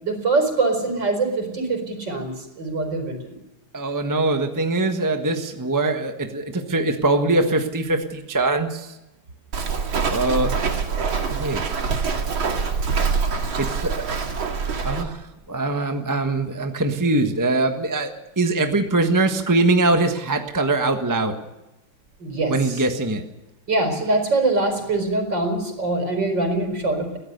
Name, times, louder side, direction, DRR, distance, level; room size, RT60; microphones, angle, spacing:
voice 1, 0.0-3.4 22.2-22.8 23.7-27.2, right 2 dB, 60° right, 5 dB, 5.2 m, -23 dB
voice 2, 3.7-9.0 10.1-10.5 11.3-11.8 13.6-14.2 14.8-18.1 18.4-21.3 22.5-23.2, right 2 dB, 10° right, 5 dB, 1.2 m, -22 dB
Walk footsteps, 9.5-15.0, right 5 dB, 75° right, 3.0 m, -24 dB
23.0 x 17.5 x 6.8 m, 0.99 s
omnidirectional pair, 2.3 m